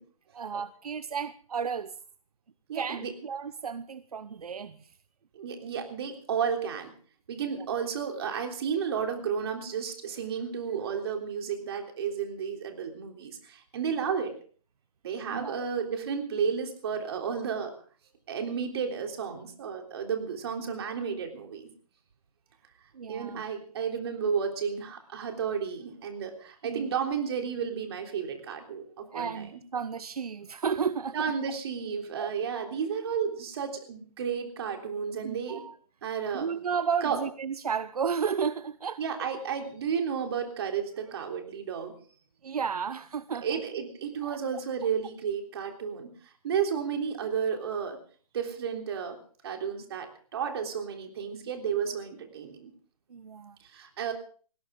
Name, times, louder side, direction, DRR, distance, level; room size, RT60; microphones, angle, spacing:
voice 1, 0.3-1.9 2.7-4.9 15.3-15.5 22.9-23.4 26.6-26.9 29.1-31.3 32.2-32.3 35.2-35.7 36.3-39.0 42.4-43.6 44.2-44.4 53.1-53.6, right 6 dB, 80° right, 14 dB, 0.9 m, -33 dB
voice 2, 2.7-3.1 5.3-6.9 7.3-14.3 15.0-17.7 18.3-21.7 23.1-29.5 31.1-35.6 36.0-36.5 37.0-37.2 39.0-41.9 43.4-46.1 46.4-48.0 48.3-49.2 49.4-52.7 53.6-54.1, right 7 dB, 45° right, 4 dB, 3.5 m, -32 dB
20.0 x 17.0 x 3.8 m, 0.42 s
hypercardioid pair, 160°, 19 cm